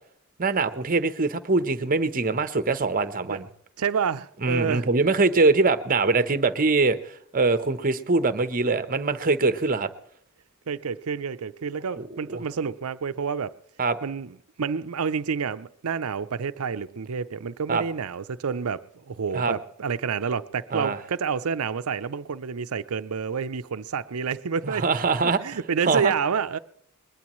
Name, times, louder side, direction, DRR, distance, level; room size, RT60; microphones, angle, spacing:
voice 1, 0.4-3.5 4.4-7.0 7.3-9.9 12.0-12.1 12.3-12.4 13.8-14.0 17.7-17.8 19.3-19.5 20.7-21.0 24.6-25.4 25.9-26.1, right 3 dB, 40° right, 0.9 m, -23 dB
voice 2, 3.8-4.9 10.7-13.5 14.0-24.8 25.2-26.6, right 6 dB, 85° right, 0.6 m, -29 dB
21.0 x 21.0 x 3.1 m
head